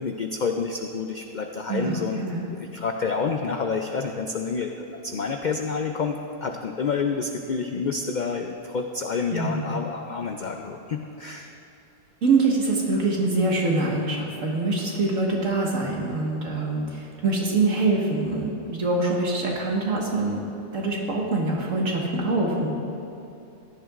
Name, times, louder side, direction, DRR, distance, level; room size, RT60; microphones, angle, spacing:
voice 1, 0.0-2.2 2.5-11.6, left 5 dB, 65° left, 4 dB, 0.4 m, -29 dB
voice 2, 1.7-2.4 9.3-9.8 12.2-20.4 20.7-22.7, right 3 dB, 70° right, -2 dB, 1.9 m, -24 dB
15.5 x 11.0 x 2.5 m, 2.9 s
omnidirectional pair, 1.4 m